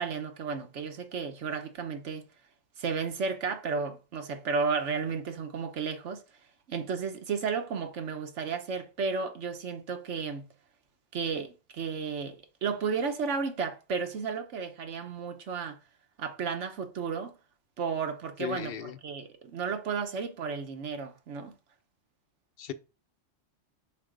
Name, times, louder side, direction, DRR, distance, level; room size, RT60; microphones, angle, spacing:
voice 1, 0.0-2.3 2.8-6.2 6.7-10.5 11.1-15.8 16.2-17.3 17.8-21.5, right 5 dB, 85° right, 1.3 m, -33 dB
voice 2, 18.4-19.0 22.6-22.7, left 10 dB, 65° left, 0.7 m, -36 dB
5.6 x 3.4 x 5.1 m
omnidirectional pair, 1.2 m